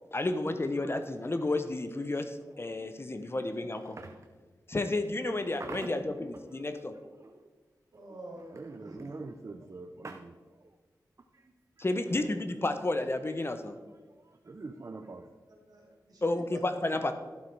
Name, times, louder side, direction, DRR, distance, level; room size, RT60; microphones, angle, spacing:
voice 1, 0.1-4.0 4.7-7.0 11.8-13.8 16.2-17.1, left 2 dB, 35° left, 9 dB, 0.9 m, -31 dB
voice 2, 7.9-9.0 12.0-12.5 15.5-16.9, right 1 dB, 65° right, -2 dB, 3.5 m, -48 dB
voice 3, 8.5-10.4 14.5-15.3, right 3 dB, 45° right, 6 dB, 0.7 m, -43 dB
12.0 x 7.6 x 4.7 m, 1.3 s
wide cardioid pair, 70°, 7 cm